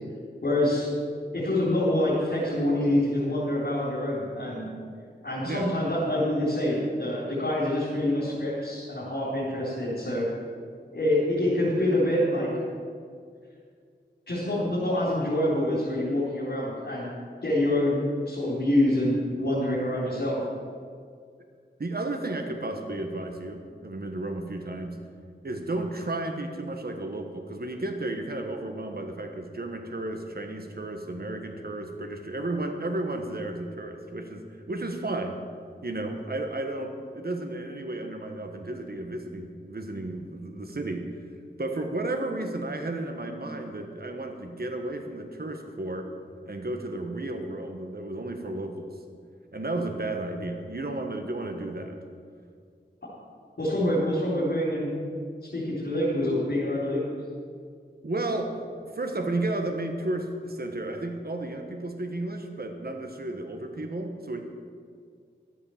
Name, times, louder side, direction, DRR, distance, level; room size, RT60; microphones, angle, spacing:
voice 1, 0.4-0.9 1.3-4.7 5.2-10.2 10.9-12.5 14.3-17.2 17.4-20.4 53.6-54.9 55.5-57.0, left 1 dB, 65° left, -8 dB, 4.0 m, -26 dB
voice 2, 21.8-25.0 25.4-35.4 35.8-41.1 41.6-46.1 46.4-49.0 49.5-52.0 58.0-64.4, right 2 dB, 55° right, 4 dB, 1.4 m, -33 dB
13.0 x 8.6 x 7.2 m, 2.1 s
wide cardioid pair, 45°, 19 cm